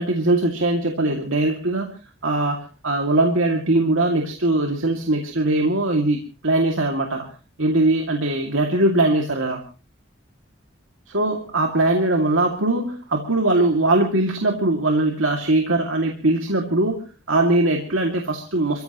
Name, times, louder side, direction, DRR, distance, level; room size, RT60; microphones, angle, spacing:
voice 1, 0.0-1.9 2.2-7.3 7.6-9.6 11.1-18.8, right 2 dB, 80° right, 2 dB, 2.3 m, -21 dB
28.0 x 15.0 x 3.0 m, 0.33 s
head